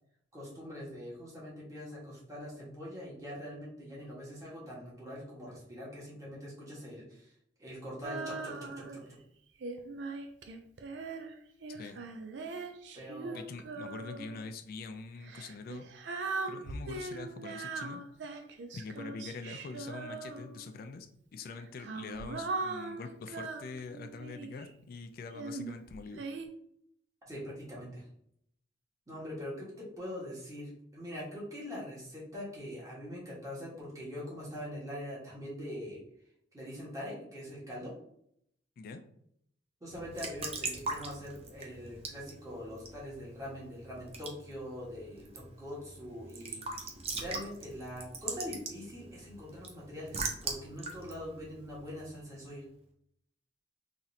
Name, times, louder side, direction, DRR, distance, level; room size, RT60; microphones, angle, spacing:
voice 1, 0.3-7.3 7.6-9.2 12.9-13.4 27.3-28.0 29.1-36.0 36.5-37.9 39.8-46.9 47.2-52.6, equal, 20° right, -6 dB, 1.5 m, -43 dB
Female singing, 8.0-9.1 9.6-14.4 15.2-20.8 21.5-24.7 25.3-26.5, right 3 dB, 85° right, 0.5 m, -40 dB
voice 2, 11.7-12.0 13.3-15.9 16.5-18.0 18.7-21.1 21.3-26.2 38.8-39.0, left 4 dB, 55° left, 7 dB, 0.3 m, -44 dB
Raindrop / Drip / Trickle dribble, 39.9-52.4, right 3 dB, 35° right, 0.6 m, -42 dB
3.9 x 3.0 x 2.7 m, 0.70 s
head